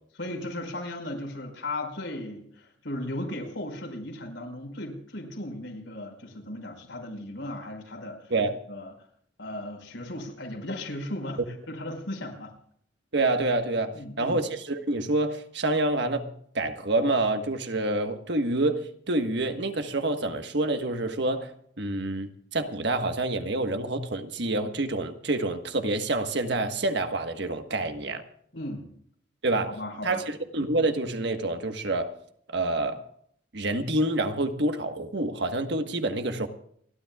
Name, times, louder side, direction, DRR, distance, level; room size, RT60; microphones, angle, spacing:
voice 1, 0.1-8.3 8.7-8.9 9.4-11.4 11.7-12.5 13.9-14.4 28.5-28.9 29.7-30.2, left 1 dB, 85° left, 2 dB, 5.2 m, -36 dB
voice 2, 13.1-16.3 16.5-28.2 29.4-29.7 30.0-32.1 32.5-33.0 33.5-36.5, right 2 dB, 65° right, 6 dB, 1.5 m, -27 dB
29.5 x 12.5 x 2.4 m, 0.64 s
head